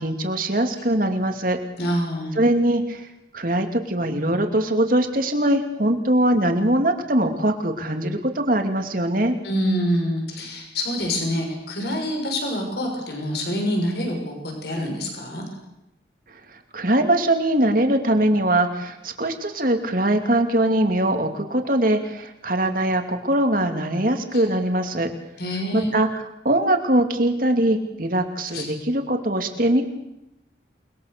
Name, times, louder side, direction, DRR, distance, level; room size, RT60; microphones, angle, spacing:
voice 1, 0.0-1.6 2.4-3.0 3.3-9.4 16.7-25.1 25.7-29.8, right 1 dB, 50° right, 5 dB, 2.7 m, -22 dB
voice 2, 1.8-2.4 9.4-15.4 24.3-24.4 25.4-25.9 28.5-28.7, equal, 65° left, 2 dB, 6.6 m, -26 dB
29.0 x 21.0 x 6.9 m, 0.89 s
head